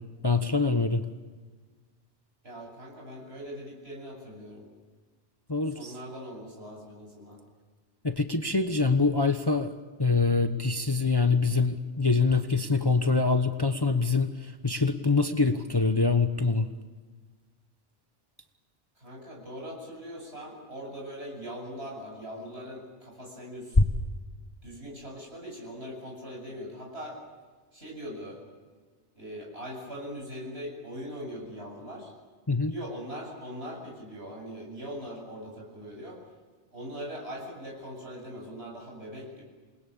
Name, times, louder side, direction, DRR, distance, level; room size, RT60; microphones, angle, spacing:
voice 1, 0.2-1.0 5.5-5.9 8.0-9.7 10.0-16.7 32.5-32.7, left 4 dB, 20° left, 8 dB, 1.0 m, -25 dB
voice 2, 2.4-4.7 5.7-7.4 19.0-23.8 24.6-27.2 27.7-28.4 29.1-32.1 32.7-36.2 36.7-39.4, equal, 60° right, -2 dB, 8.3 m, -41 dB
28.5 x 20.5 x 8.7 m, 1.4 s
omnidirectional pair, 1.2 m